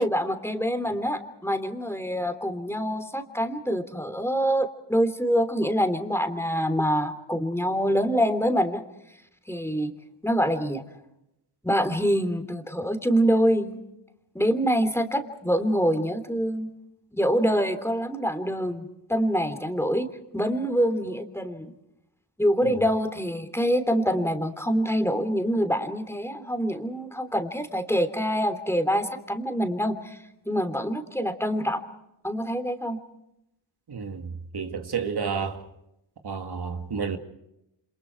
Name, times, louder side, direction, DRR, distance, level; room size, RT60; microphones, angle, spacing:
voice 1, 0.0-8.8 9.5-9.9 10.2-10.8 11.6-13.8 14.3-16.7 17.1-20.1 20.3-21.7 22.4-30.2 30.4-31.8 32.2-33.0, equal, 5° left, 3.2 m, -25 dB
voice 2, 33.9-34.3 34.5-35.6 36.2-37.2, right 6 dB, 60° right, 2.2 m, -30 dB
28.5 x 27.0 x 4.6 m
cardioid pair, 75°, 44 cm